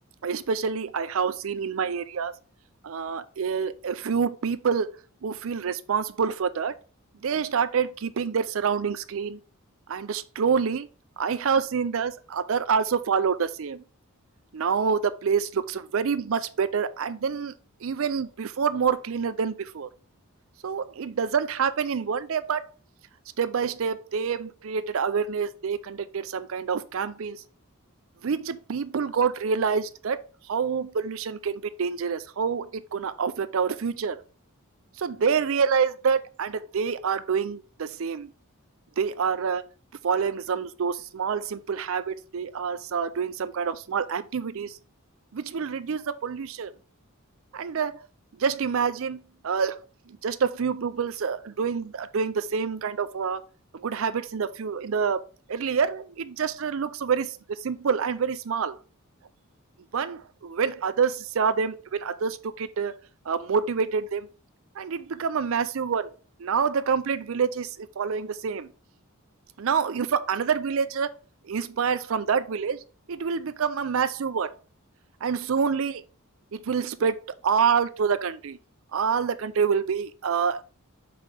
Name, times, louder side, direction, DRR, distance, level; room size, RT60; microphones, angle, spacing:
voice 1, 0.2-2.4 2.8-4.9 5.2-6.8 7.2-9.4 9.9-10.9 11.2-13.8 14.5-17.5 17.8-19.9 20.6-22.7 23.4-27.4 28.2-34.2 35.0-38.3 39.0-39.6 40.0-44.8 45.3-46.7 47.5-48.0 48.4-49.8 50.1-53.4 53.7-55.2 55.5-58.8 59.9-62.9 63.3-64.3 64.8-66.1 66.4-68.7 69.6-71.1 71.5-72.8 73.1-74.5 75.2-76.0 76.5-78.6 78.9-80.6, right 6 dB, 65° right, 0.4 m, -27 dB
5.9 x 4.7 x 5.2 m
head